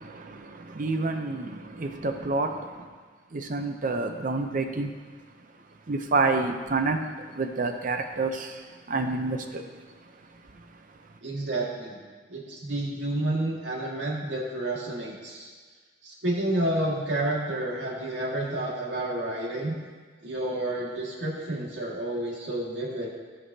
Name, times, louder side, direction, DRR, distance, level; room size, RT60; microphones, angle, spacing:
voice 1, 0.0-2.9 3.3-4.9 5.9-9.7 10.5-10.6, right 3 dB, 45° right, 0.7 m, -29 dB
voice 2, 11.2-12.0 12.3-15.5 16.0-19.8 20.2-23.1, right 1 dB, 80° right, 2.0 m, -30 dB
16.0 x 5.4 x 2.8 m
head